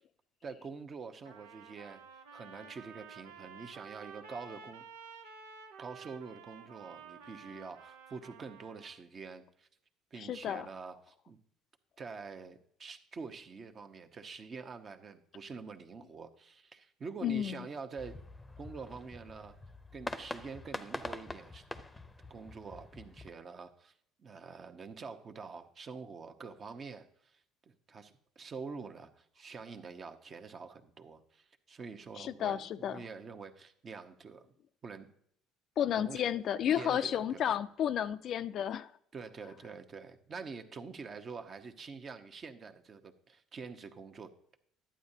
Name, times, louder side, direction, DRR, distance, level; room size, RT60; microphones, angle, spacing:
voice 1, 0.4-2.0 2.3-4.8 5.8-9.7 10.1-11.4 12.0-18.2 18.6-19.6 19.9-21.6 22.3-23.9 24.2-27.4 27.7-34.5 34.8-35.1 36.0-36.2 36.7-37.6 39.1-44.6, right 5 dB, 40° right, 1.0 m, -46 dB
Trumpet, 1.2-9.0, right 5 dB, 90° right, 0.8 m, -52 dB
voice 2, 10.2-10.7 17.2-17.7 32.2-33.0 35.8-38.9, left 9 dB, 55° left, 0.4 m, -32 dB
sound 1, 18.0-23.3, left 2 dB, 15° left, 0.7 m, -44 dB
11.5 x 8.7 x 2.8 m
supercardioid pair, 75°, 0 cm